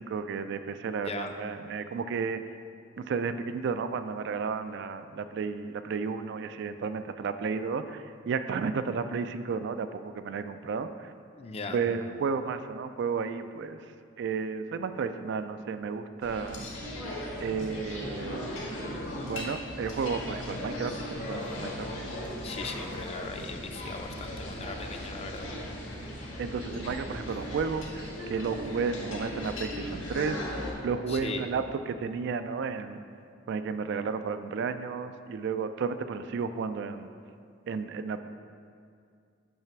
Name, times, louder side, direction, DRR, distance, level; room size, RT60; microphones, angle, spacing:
voice 1, 0.0-2.4 3.0-11.1 11.7-13.8 14.2-16.7 17.4-18.6 19.2-20.9 21.3-21.9 26.4-30.4 30.8-33.0 33.5-37.1 37.7-38.2, right 5 dB, 60° right, 10 dB, 0.3 m, -32 dB
voice 2, 11.4-11.8 22.4-25.5 31.1-31.5, left 3 dB, 30° left, 5 dB, 0.5 m, -38 dB
sound 1, 16.2-30.7, left 1 dB, 80° left, 1.6 m, -37 dB
8.9 x 3.3 x 5.8 m, 2.3 s
head